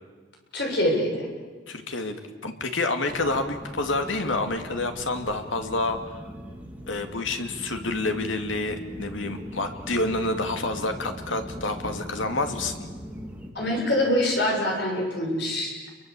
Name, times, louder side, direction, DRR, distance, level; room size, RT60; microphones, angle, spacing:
voice 1, 0.5-1.3 13.5-15.7, left 1 dB, 55° left, 0 dB, 7.2 m, -24 dB
voice 2, 1.7-6.2 6.9-12.9, left 2 dB, 80° left, 6 dB, 2.6 m, -28 dB
sound 1, 3.1-13.5, equal, 5° right, 2.8 m, -40 dB
29.0 x 23.5 x 8.5 m, 1.4 s
head